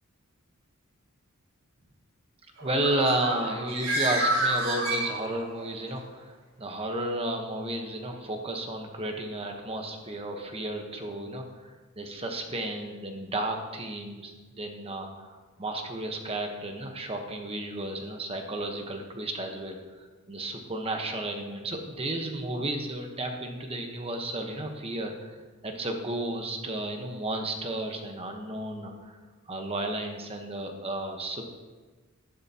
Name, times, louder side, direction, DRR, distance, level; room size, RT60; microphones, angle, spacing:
voice 1, 2.6-25.3 25.6-29.2 29.5-31.4, right 1 dB, 25° right, 3 dB, 1.1 m, -33 dB
Bird, 2.6-5.6, right 1 dB, 65° right, 3.3 m, -29 dB
11.5 x 11.5 x 2.9 m, 1.3 s
head